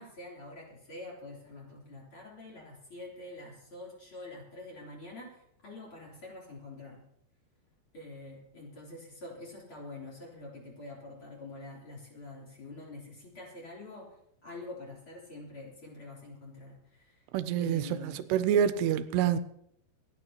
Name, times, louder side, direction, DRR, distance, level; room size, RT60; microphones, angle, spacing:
voice 1, 0.0-7.0 7.9-14.2 14.4-17.3 17.6-18.3, left 2 dB, 30° left, 3.8 m, -46 dB
voice 2, 17.3-19.4, right 9 dB, 85° right, 2.7 m, -27 dB
27.0 x 9.6 x 2.9 m
omnidirectional pair, 4.7 m